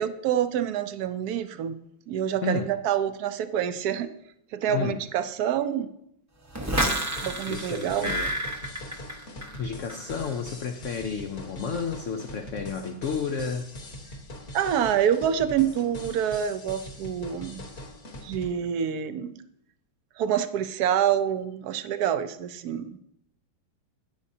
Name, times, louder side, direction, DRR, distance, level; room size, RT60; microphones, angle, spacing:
voice 1, 0.0-1.8 2.1-4.1 4.5-5.9 7.2-8.2 14.5-17.6 18.2-19.3 20.2-23.0, right 9 dB, 70° right, 11 dB, 1.0 m, -27 dB
voice 2, 4.7-5.0 7.0-8.3 9.6-13.7, left 5 dB, 75° left, 5 dB, 0.7 m, -32 dB
sound 1, 6.5-9.6 9.9-10.3, right 1 dB, 15° right, 0.5 m, -30 dB
sound 2, 6.8-18.5, left 1 dB, 45° left, 1.6 m, -42 dB
11.5 x 9.8 x 2.7 m, 0.77 s
omnidirectional pair, 2.0 m